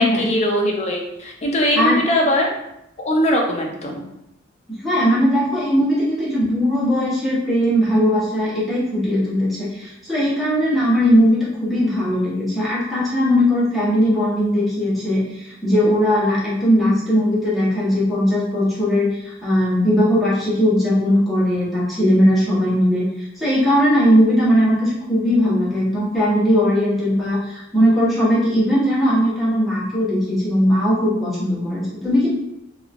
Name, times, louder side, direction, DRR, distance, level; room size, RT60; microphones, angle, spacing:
voice 1, 0.0-2.5 3.0-4.1, equal, 35° left, 0 dB, 0.5 m, -20 dB
voice 2, 4.7-32.3, equal, ahead, -10 dB, 1.2 m, -19 dB
2.9 x 2.8 x 2.5 m, 0.83 s
head